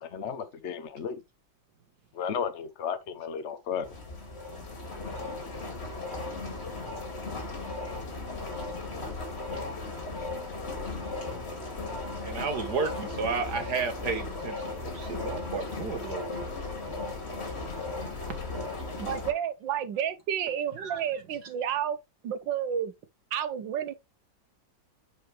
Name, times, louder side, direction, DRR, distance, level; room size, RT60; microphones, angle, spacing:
voice 1, 0.0-1.2 2.2-3.9, left 7 dB, 50° left, 0.9 m, -33 dB
sound 1, 3.8-19.3, left 3 dB, 35° left, 2.5 m, -36 dB
voice 2, 12.2-16.5 18.3-18.4 20.8-21.0, right 5 dB, 60° right, 1.9 m, -32 dB
voice 3, 19.0-22.0 22.2-22.9 23.3-23.9, right 9 dB, 85° right, 1.7 m, -31 dB
9.3 x 4.9 x 3.3 m
omnidirectional pair, 2.0 m